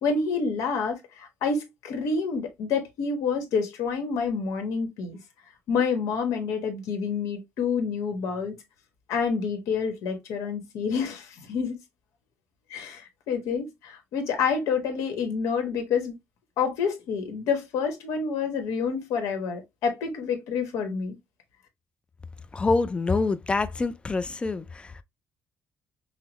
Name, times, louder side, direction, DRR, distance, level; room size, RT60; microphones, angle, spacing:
voice 1, 0.0-5.2 5.7-8.6 9.1-11.8 12.7-16.1 16.6-21.1, left 5 dB, 85° left, 1.2 m, -28 dB
voice 2, 22.5-25.0, left 3 dB, 20° left, 0.4 m, -26 dB
5.6 x 2.0 x 2.9 m
cardioid pair, 125°, 5 cm